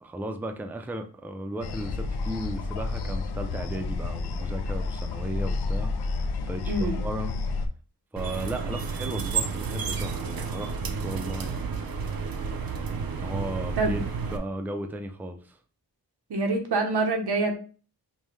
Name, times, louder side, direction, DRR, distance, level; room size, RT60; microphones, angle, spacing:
voice 1, 0.0-5.9 6.4-7.3 8.1-12.0 13.2-15.6, right 1 dB, 5° right, 0.4 m, -35 dB
sound 1, 1.6-7.7, left 3 dB, 85° left, 0.5 m, -30 dB
voice 2, 6.7-7.0 13.8-14.0 16.3-17.5, right 2 dB, 85° right, 1.0 m, -25 dB
sound 2, 8.2-14.4, right 5 dB, 65° right, 0.6 m, -31 dB
5.4 x 2.2 x 3.2 m
wide cardioid pair, 100°, 38 cm